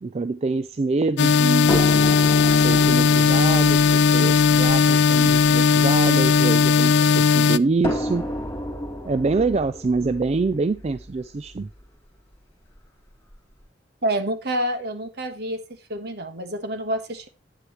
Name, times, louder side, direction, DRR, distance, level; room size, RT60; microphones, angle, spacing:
voice 1, 0.0-1.8 2.5-8.2 9.0-11.7, right 3 dB, 35° right, 0.4 m, -25 dB
sound 1, 1.2-7.6, left 5 dB, 70° left, 0.4 m, -17 dB
sound 2, 1.7-6.9 7.8-11.8 12.8-12.9 13.3-13.4, equal, 15° left, 2.5 m, -32 dB
voice 2, 14.0-15.6 15.9-17.3, right 1 dB, 60° right, 1.4 m, -27 dB
10.0 x 9.4 x 3.1 m
head